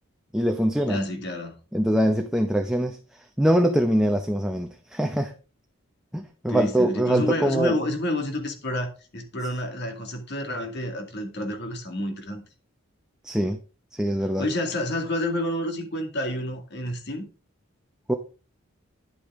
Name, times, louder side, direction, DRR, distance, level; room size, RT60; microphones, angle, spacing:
voice 1, 0.3-1.0 1.7-3.0 3.4-5.3 6.1-7.8 13.2-13.6 13.9-14.5 18.1-18.2, right 1 dB, 5° right, 0.8 m, -23 dB
voice 2, 0.8-1.5 6.5-12.4 14.4-17.3, left 1 dB, 55° left, 2.3 m, -29 dB
10.5 x 8.5 x 3.7 m
head